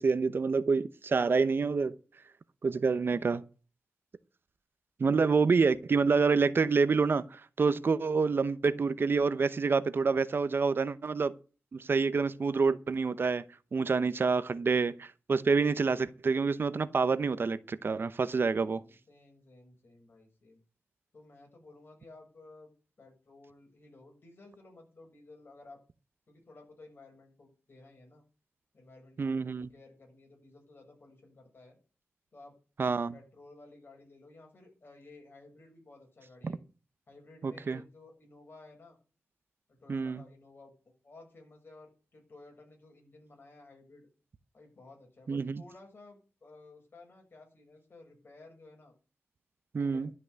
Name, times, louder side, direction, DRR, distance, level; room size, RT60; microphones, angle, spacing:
voice 1, 0.0-2.0 2.6-3.4 5.0-11.3 11.7-13.4 13.7-18.8 29.2-29.7 32.8-33.1 36.4-36.5 37.4-37.8 39.9-40.2 45.3-45.6 49.7-50.1, right 4 dB, 50° right, 0.8 m, -27 dB
voice 2, 18.5-20.6 21.1-22.7 23.0-25.8 26.3-28.2 28.7-31.8 32.3-36.6 37.1-39.0 39.7-44.1 44.5-48.9 49.8-50.1, left 2 dB, 50° left, 6.9 m, -55 dB
12.5 x 6.1 x 9.3 m
wide cardioid pair, 95°, 5 cm